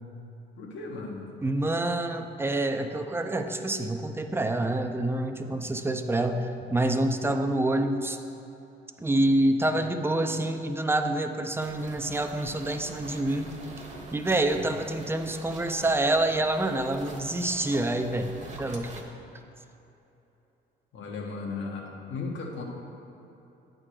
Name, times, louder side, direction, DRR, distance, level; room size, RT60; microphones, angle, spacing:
voice 1, 0.6-1.3 9.7-9.9 14.6-14.7 20.9-22.6, left 4 dB, 70° left, 0 dB, 1.3 m, -36 dB
voice 2, 1.4-8.2 9.0-13.6 14.1-18.3 18.6-18.9, right 1 dB, 10° right, 6 dB, 0.5 m, -27 dB
sound 1, 11.6-19.0, right 2 dB, 35° right, 1.1 m, -44 dB
8.8 x 3.8 x 6.4 m, 3.0 s
cardioid pair, 90°, 20 cm